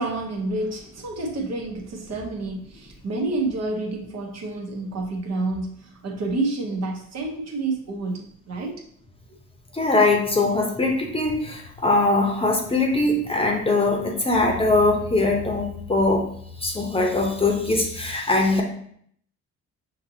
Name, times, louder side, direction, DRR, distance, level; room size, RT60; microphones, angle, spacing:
voice 1, 0.0-8.8, right 2 dB, 60° right, 0 dB, 1.0 m, -29 dB
voice 2, 9.7-16.2 16.6-18.6, left 2 dB, 20° left, 1 dB, 0.8 m, -21 dB
5.8 x 2.7 x 2.7 m, 0.65 s
cardioid pair, 90°, 30 cm